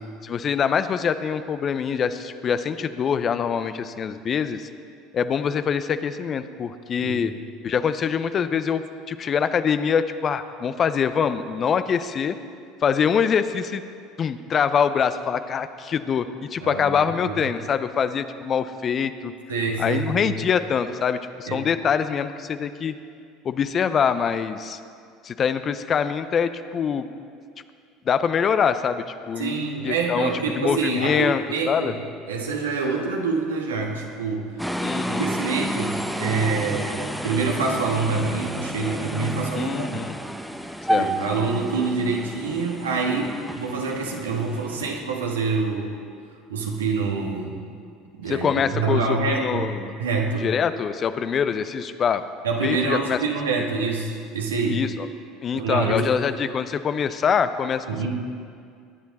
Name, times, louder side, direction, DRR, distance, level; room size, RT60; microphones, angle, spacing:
voice 1, 0.2-4.7 5.1-7.3 7.6-12.4 12.8-13.8 14.2-19.3 19.8-22.9 23.4-24.8 25.2-27.1 28.0-31.9 34.8-35.3 39.5-40.2 40.9-41.1 48.3-50.0 50.4-52.2 52.6-53.2 54.7-54.9 55.4-57.8, left 7 dB, 40° left, 11 dB, 0.7 m, -24 dB
voice 2, 19.5-20.3 21.5-21.6 29.4-32.0 32.3-34.5 35.1-40.0 40.9-46.0 46.5-47.6 48.2-49.7 50.0-50.5 52.4-54.8 55.5-56.1 57.9-58.1, right 4 dB, 80° right, 0 dB, 1.9 m, -26 dB
sound 1, 34.6-45.0, equal, ahead, 0.9 m, -30 dB
21.5 x 10.5 x 4.2 m, 2.3 s
figure-of-eight pair, 65°, 0 cm